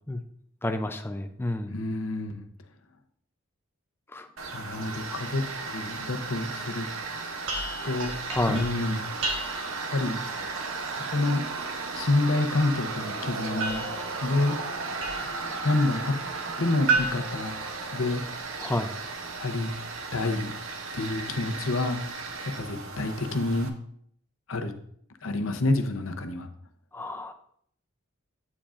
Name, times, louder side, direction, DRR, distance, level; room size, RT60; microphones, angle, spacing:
voice 1, 0.6-1.7 4.1-4.3 8.3-8.6 18.6-18.9 26.9-27.3, left 1 dB, 10° left, 7 dB, 0.5 m, -29 dB
voice 2, 1.7-2.4 4.5-6.9 7.8-8.1 8.5-9.0 9.9-10.2 11.1-11.4 11.9-13.8 14.2-14.6 15.6-16.1 16.6-17.6 17.9-18.2 19.4-19.7 20.1-20.5 20.9-22.0 22.4-23.7 24.5-24.7 25.2-26.5, left 2 dB, 80° left, 6 dB, 0.8 m, -28 dB
Tools, 4.4-23.7, right 4 dB, 85° right, 0.9 m, -35 dB
sound 1, 7.5-9.9 13.6-15.5 16.9-18.3, right 4 dB, 65° right, 1.4 m, -32 dB
8.5 x 7.2 x 2.5 m, 0.65 s
head